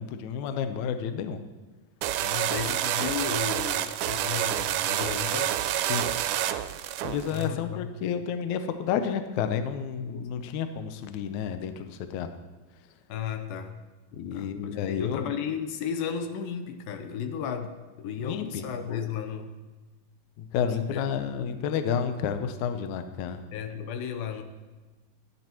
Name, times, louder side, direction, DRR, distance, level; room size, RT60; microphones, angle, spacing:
voice 1, 0.0-1.4 5.9-6.0 7.0-12.3 14.1-15.3 18.2-19.1 20.4-23.4, left 7 dB, 75° left, 8 dB, 1.9 m, -31 dB
sound 1, 2.0-7.5, right 12 dB, 80° right, 1.9 m, -28 dB
voice 2, 2.2-5.5 7.3-7.9 13.1-13.8 14.3-19.6 20.7-21.0 23.5-24.4, left 7 dB, 90° left, 6 dB, 2.6 m, -34 dB
23.5 x 9.2 x 3.0 m, 1.3 s
omnidirectional pair, 4.0 m